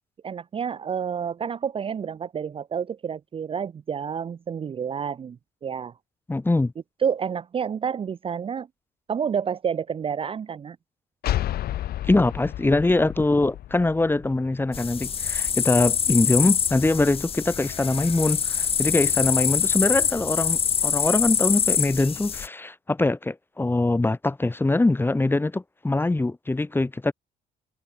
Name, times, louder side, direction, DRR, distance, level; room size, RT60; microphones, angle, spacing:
voice 1, 0.2-5.9 7.0-8.7 9.1-10.8, right 7 dB, 35° right, 0.7 m, -29 dB
voice 2, 6.3-6.7 12.1-27.1, left 2 dB, 10° left, 2.7 m, -23 dB
sound 1, 11.2-14.7, left 13 dB, 65° left, 4.4 m, -31 dB
sound 2, 14.7-22.5, left 7 dB, 35° left, 0.7 m, -25 dB
cardioid pair, 110°, 17 cm